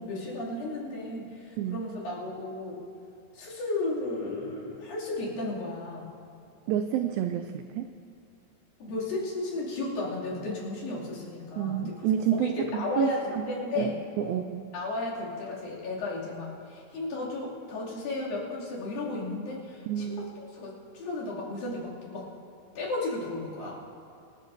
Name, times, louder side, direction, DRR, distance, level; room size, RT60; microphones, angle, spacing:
voice 1, 0.0-2.8 3.3-6.1 8.8-12.0 12.4-14.4 14.7-22.3 22.8-23.7, left 2 dB, 60° left, -6 dB, 4.4 m, -34 dB
voice 2, 6.7-7.9 11.6-13.5 13.8-14.6 19.9-20.3, right 10 dB, 85° right, 8 dB, 2.0 m, -29 dB
27.0 x 12.0 x 2.7 m, 2.4 s
omnidirectional pair, 4.7 m